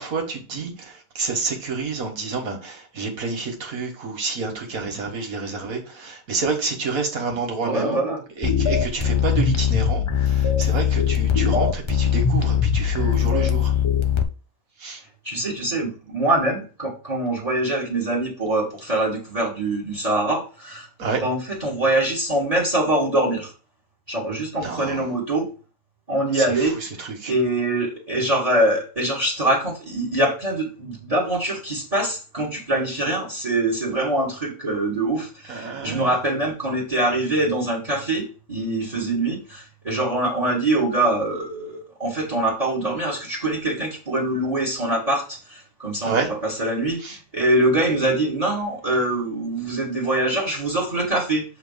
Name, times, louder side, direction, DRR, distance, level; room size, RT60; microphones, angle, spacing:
voice 1, 0.0-8.0 8.4-13.7 14.8-15.0 21.0-21.2 24.6-25.0 26.3-27.3 35.5-36.2 46.0-46.3 47.0-47.2, right 4 dB, 90° right, 2 dB, 1.8 m, -29 dB
voice 2, 7.6-8.2 15.2-20.9 21.2-23.5 24.1-25.5 26.1-27.0 27.3-51.4, right 1 dB, 30° right, -1 dB, 1.7 m, -24 dB
sound 1, 8.4-14.2, left 7 dB, 40° left, 0.4 m, -21 dB
7.3 x 2.9 x 5.4 m, 0.36 s
omnidirectional pair, 1.4 m